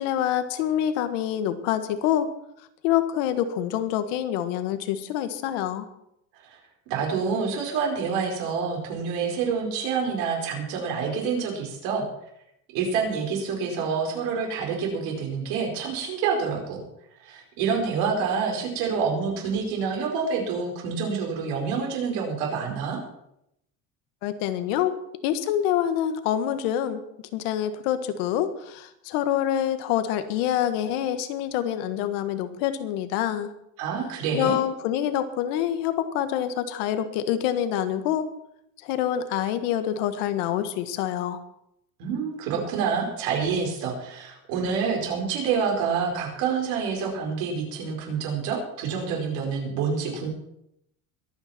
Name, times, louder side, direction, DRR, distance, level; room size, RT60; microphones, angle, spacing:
voice 1, 0.0-2.3 2.8-5.9 24.2-24.9 25.2-27.0 27.3-33.5 34.3-38.3 38.8-41.4, left 11 dB, 80° left, 10 dB, 1.6 m, -26 dB
voice 2, 6.9-12.0 12.7-16.8 17.2-23.0 33.8-34.6 42.0-50.3, right 5 dB, 65° right, 0 dB, 4.9 m, -27 dB
23.0 x 9.1 x 4.4 m, 0.78 s
cardioid pair, 170°, 38 cm